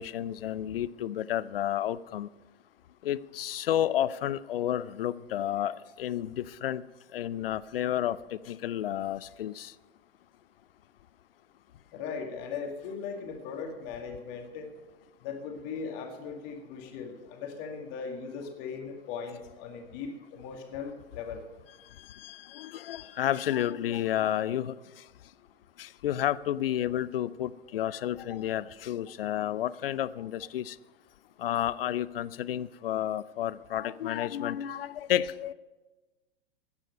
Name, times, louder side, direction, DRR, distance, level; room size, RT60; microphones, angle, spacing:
voice 1, 0.0-2.3 3.0-6.8 7.1-8.2 8.5-9.7 22.1-24.8 25.8-30.8 31.4-35.5, left 11 dB, 65° left, 18 dB, 0.6 m, -31 dB
voice 2, 11.9-14.7 15.2-21.4, left 5 dB, 40° left, 4 dB, 2.1 m, -38 dB
14.0 x 9.8 x 5.4 m, 1.2 s
figure-of-eight pair, 100°, 31 cm